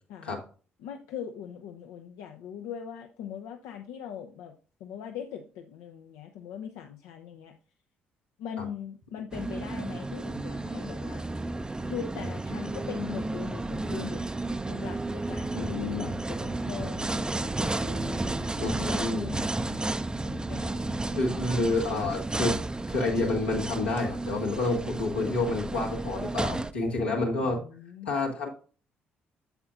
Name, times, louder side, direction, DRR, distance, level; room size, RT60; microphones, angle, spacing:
voice 1, 0.8-4.5 4.8-7.5 8.4-11.2 11.8-14.3 14.7-19.9 20.2-21.4 27.4-28.1, left 8 dB, 65° left, 5 dB, 0.7 m, -41 dB
sound 1, 9.3-26.7, right 2 dB, 15° right, 0.5 m, -32 dB
voice 2, 15.5-16.1 18.6-19.3 21.1-22.6 22.9-27.6 28.1-28.5, left 2 dB, 80° left, -2 dB, 1.9 m, -29 dB
8.0 x 7.6 x 2.5 m, 0.38 s
figure-of-eight pair, 45°, 6 cm